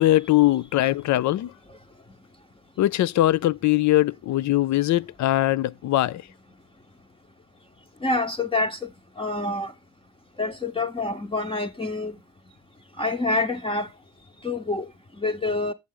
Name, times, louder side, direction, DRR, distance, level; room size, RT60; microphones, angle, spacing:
voice 1, 0.0-1.5 2.8-6.2, left 15 dB, 70° left, 0.6 m, -21 dB
voice 2, 8.0-8.9 9.2-9.7 10.4-12.2 13.0-13.9 14.4-14.9 15.2-15.7, left 2 dB, 20° left, 1.0 m, -26 dB
8.7 x 7.5 x 3.7 m
cardioid pair, 90°, 30 cm